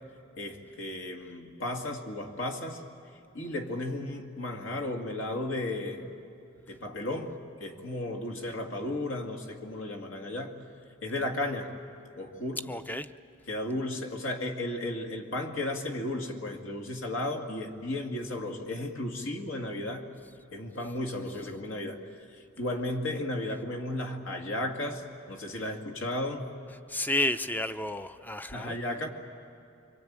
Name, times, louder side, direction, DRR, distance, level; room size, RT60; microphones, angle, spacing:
voice 1, 0.4-2.8 3.3-6.1 6.7-10.6 11.0-11.7 12.2-12.6 13.5-20.1 20.5-26.5 28.5-29.1, left 1 dB, 65° left, 3 dB, 2.4 m, -34 dB
voice 2, 12.7-13.1 26.9-28.8, left 1 dB, 10° left, 11 dB, 0.6 m, -31 dB
27.5 x 24.5 x 8.9 m, 2.7 s
head